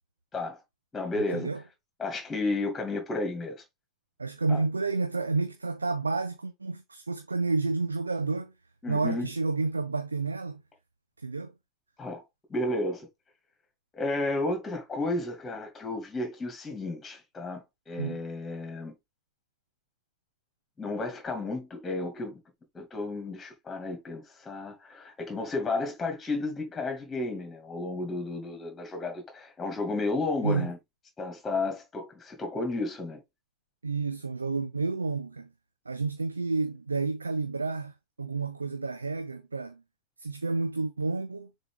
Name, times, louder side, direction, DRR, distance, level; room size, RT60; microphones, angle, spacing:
voice 1, 0.9-1.5 2.0-3.6 4.5-4.6 8.8-9.3 12.0-12.2 12.5-13.1 13.9-18.9 20.8-22.4 22.7-30.8 31.2-33.2, left 2 dB, 15° left, 2.4 m, -32 dB
voice 2, 4.2-8.5 8.9-10.6 11.2-11.5 18.0-18.2 30.4-30.7 33.8-35.5 35.9-37.9 38.2-39.8 40.2-41.5, right 3 dB, 80° right, 0.8 m, -30 dB
6.7 x 4.2 x 3.5 m
figure-of-eight pair, 90°, 0 cm